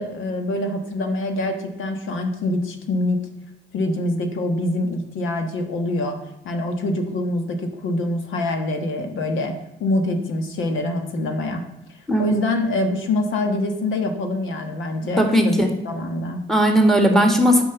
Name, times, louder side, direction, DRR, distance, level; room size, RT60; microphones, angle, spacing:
voice 1, 0.0-3.2 3.7-6.2 6.4-9.5 9.8-11.6 12.2-15.6 15.8-16.4, left 2 dB, 80° left, 5 dB, 1.4 m, -25 dB
voice 2, 15.1-15.7 16.5-17.6, equal, ahead, 3 dB, 1.8 m, -17 dB
9.0 x 5.3 x 6.8 m, 0.84 s
cardioid pair, 90°, 20 cm